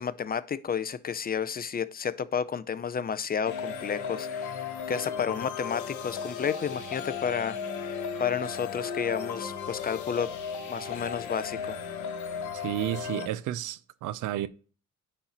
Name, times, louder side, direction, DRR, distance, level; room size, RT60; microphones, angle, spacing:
voice 1, 0.0-7.6 8.2-10.3 10.7-11.8, left 7 dB, 30° left, 0.5 m, -31 dB
sound 1, 3.5-13.3, left 6 dB, 75° left, 1.1 m, -35 dB
voice 2, 12.5-14.5, right 13 dB, 80° right, 0.5 m, -32 dB
9.7 x 4.2 x 2.9 m
cardioid pair, 90°, 30 cm